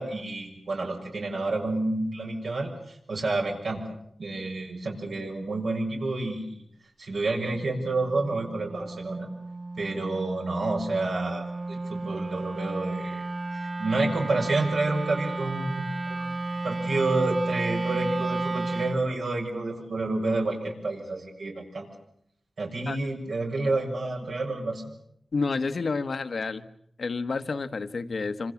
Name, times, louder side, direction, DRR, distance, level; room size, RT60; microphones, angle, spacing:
voice 1, 0.0-3.8 4.2-6.6 7.0-9.3 9.8-13.2 13.8-16.3 16.6-21.9 22.6-24.8, right 2 dB, 75° right, 0 dB, 6.9 m, -29 dB
Wind instrument woodwind instrument, 7.5-19.1, right 2 dB, 35° right, 1.2 m, -33 dB
voice 2, 25.3-26.7 27.0-28.5, left 4 dB, 65° left, 10 dB, 1.3 m, -29 dB
27.0 x 26.5 x 7.2 m, 0.69 s
wide cardioid pair, 100°, 0 cm